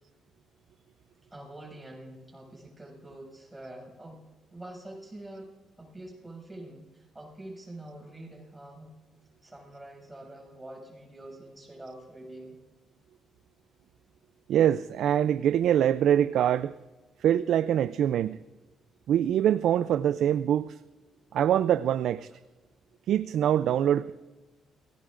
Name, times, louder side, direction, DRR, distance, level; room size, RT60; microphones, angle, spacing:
voice 1, 1.3-4.2 4.5-5.5 5.8-8.9 9.4-12.5, right 1 dB, 15° right, 6.7 m, -45 dB
voice 2, 14.5-16.7 17.2-18.4 19.1-20.7 21.3-22.3 23.1-24.1, right 10 dB, 75° right, 0.4 m, -24 dB
28.5 x 17.5 x 2.5 m
cardioid pair, 90°, 0 cm